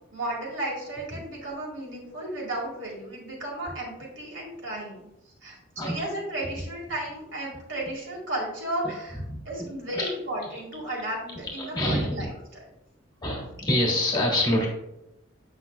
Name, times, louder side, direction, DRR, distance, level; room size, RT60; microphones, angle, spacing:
voice 1, 0.1-5.1 5.4-9.2 9.5-12.3, right 1 dB, 70° right, -3 dB, 2.1 m, -34 dB
voice 2, 11.4-12.3 13.2-14.7, left 1 dB, 20° left, -1 dB, 1.5 m, -26 dB
7.6 x 5.6 x 2.3 m, 0.86 s
head